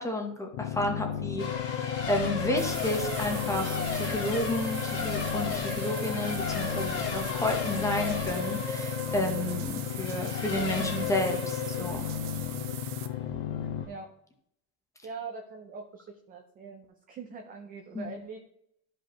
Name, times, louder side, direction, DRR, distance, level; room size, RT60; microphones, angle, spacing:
voice 1, 0.0-12.1 17.9-18.1, left 1 dB, 5° left, 3 dB, 0.8 m, -31 dB
sound 1, 0.5-13.9, left 9 dB, 55° left, 0.8 m, -34 dB
Race car auto racing / Accelerating revving vroom / Mechanisms, 1.4-13.9, left 4 dB, 30° left, 1.8 m, -35 dB
sound 2, 2.6-13.1, right 12 dB, 80° right, 1.0 m, -43 dB
voice 2, 15.0-18.5, right 4 dB, 20° right, 3 dB, 0.4 m, -42 dB
13.0 x 5.1 x 3.0 m, 0.71 s
cardioid pair, 175°, 45 cm